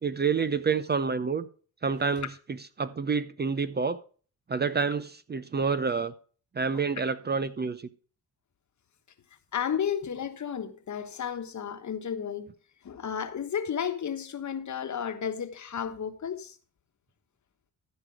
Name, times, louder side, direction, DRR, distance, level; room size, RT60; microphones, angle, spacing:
voice 1, 0.0-1.5 1.8-4.0 4.5-6.1 6.5-7.9, right 5 dB, 25° right, 0.6 m, -28 dB
voice 2, 9.5-12.5 12.8-16.5, left 8 dB, 50° left, 1.3 m, -33 dB
14.0 x 5.1 x 4.7 m
cardioid pair, 75°, 38 cm